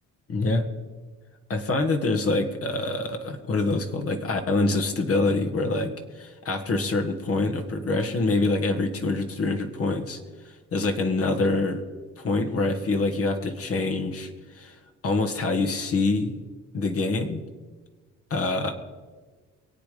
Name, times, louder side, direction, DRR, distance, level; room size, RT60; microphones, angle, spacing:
voice 1, 0.3-0.7 1.5-10.2 10.5-11.8 12.2-16.4 16.7-17.4 18.3-18.7, left 3 dB, 50° left, 6 dB, 1.8 m, -25 dB
23.0 x 8.4 x 5.2 m, 1.4 s
cardioid pair, 90°, 30 cm